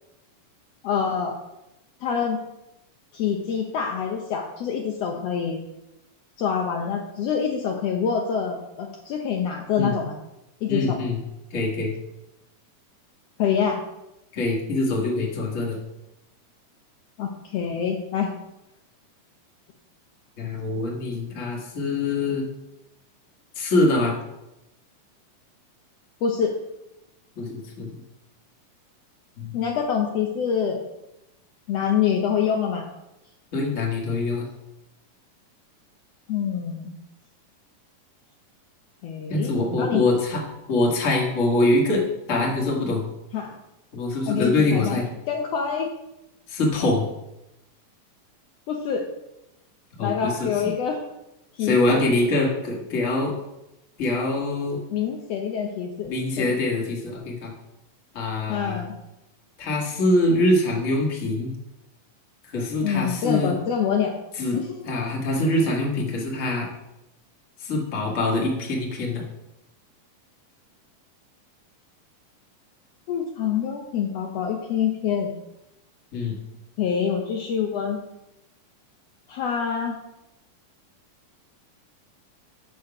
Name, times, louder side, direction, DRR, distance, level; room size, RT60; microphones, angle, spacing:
voice 1, 0.8-1.4 2.0-2.4 3.1-5.6 6.4-10.1 10.6-11.0 13.4-13.8 17.2-18.3 26.2-26.5 29.5-30.8 31.7-32.9 36.3-36.9 39.0-40.0 43.3-43.6 44.3-45.0 45.3-45.9 48.7-49.0 50.0-51.0 51.6-52.0 54.9-56.1 56.4-56.5 58.5-59.0 62.8-64.1 64.5-64.7 73.1-75.3 76.8-78.0 79.3-80.0, left 7 dB, 85° left, 1 dB, 1.4 m, -26 dB
voice 2, 10.7-11.2 11.5-11.9 14.3-15.8 20.4-22.5 23.5-24.2 27.3-27.9 29.4-29.6 33.5-34.4 39.3-40.4 40.7-43.1 43.9-45.1 46.5-47.1 50.0-50.7 51.6-53.3 54.0-54.8 56.0-57.5 58.1-58.8 59.6-61.5 62.5-63.5 64.4-64.6 64.8-66.7 67.6-69.2 76.1-76.4, left 2 dB, 40° left, -1 dB, 1.1 m, -24 dB
6.4 x 6.2 x 5.8 m, 0.91 s
omnidirectional pair, 3.8 m